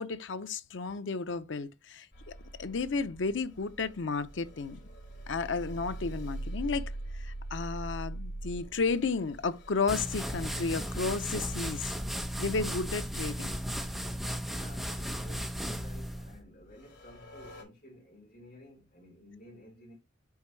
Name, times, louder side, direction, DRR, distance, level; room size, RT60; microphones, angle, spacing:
voice 1, 0.0-4.8 5.3-11.9 12.4-13.5, left 4 dB, 90° left, 0.6 m, -33 dB
sound 1, 2.1-12.5 12.9-13.0 13.5-13.8 15.0-15.4 15.7-16.3 16.7-17.6, right 1 dB, 70° left, 3.8 m, -43 dB
sound 2, 9.9-16.4, equal, ahead, 0.9 m, -35 dB
voice 2, 14.5-19.9, left 1 dB, 55° left, 4.1 m, -53 dB
7.1 x 4.4 x 3.1 m
head